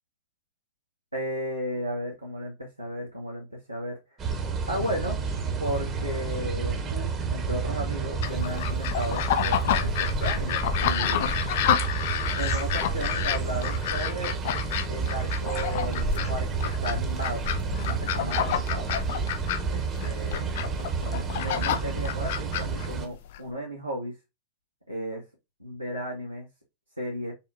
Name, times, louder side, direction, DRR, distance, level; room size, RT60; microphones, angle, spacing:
voice 1, 1.1-4.2 4.7-5.2 5.6-11.4 12.4-14.3 14.9-18.9 19.7-20.6 20.9-24.2 24.9-25.3 25.6-26.5 27.0-27.3, equal, 90° right, -3 dB, 1.0 m, -34 dB
sound 1, 4.2-23.1, right 5 dB, 25° right, 0.9 m, -30 dB
sound 2, 8.2-23.4, left 10 dB, 55° left, 0.6 m, -29 dB
5.5 x 2.2 x 2.6 m, 0.24 s
figure-of-eight pair, 90°, 0 cm